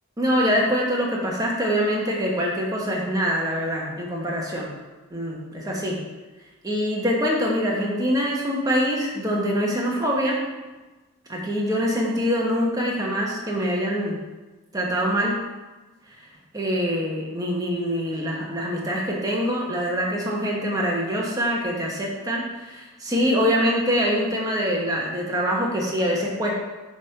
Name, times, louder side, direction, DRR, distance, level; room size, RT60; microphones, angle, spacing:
voice 1, 0.2-4.7 5.1-6.0 6.6-10.4 11.3-14.2 14.7-15.4 16.1-16.2 16.5-26.5, equal, 15° right, -3 dB, 1.2 m, -24 dB
7.1 x 3.6 x 5.9 m, 1.2 s
head